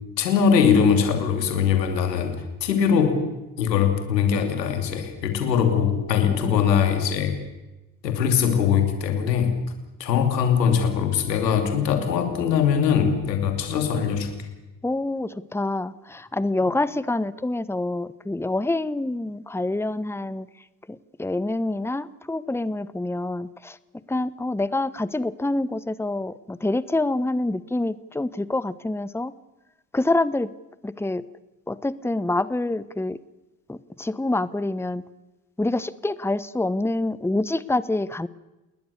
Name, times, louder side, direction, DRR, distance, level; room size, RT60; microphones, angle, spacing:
voice 1, 0.2-2.4 2.6-3.2 3.6-7.4 8.0-9.5 10.0-14.3, left 7 dB, 90° left, 6 dB, 2.8 m, -21 dB
voice 2, 14.8-20.5 20.9-23.8 24.1-29.3 29.9-30.5 30.8-31.2 31.7-33.2 33.7-35.0 35.6-38.3, left 2 dB, 5° left, 17 dB, 1.1 m, -26 dB
29.0 x 20.5 x 6.9 m, 1.0 s
hypercardioid pair, 40°, 48 cm